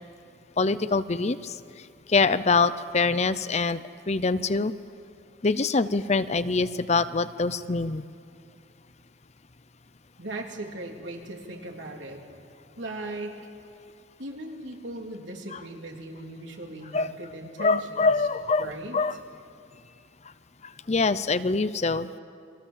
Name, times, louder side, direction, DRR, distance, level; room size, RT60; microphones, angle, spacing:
voice 1, 0.6-1.5 2.1-3.8 4.1-4.7 5.4-8.0 15.5-15.6 16.9-17.1 17.6-19.1 20.9-22.1, left 4 dB, 35° left, 14 dB, 0.6 m, -24 dB
voice 2, 10.2-12.2 12.8-13.4 14.2-18.1 18.6-19.0, right 2 dB, 80° right, 1 dB, 3.4 m, -38 dB
30.0 x 23.5 x 7.6 m, 2.4 s
head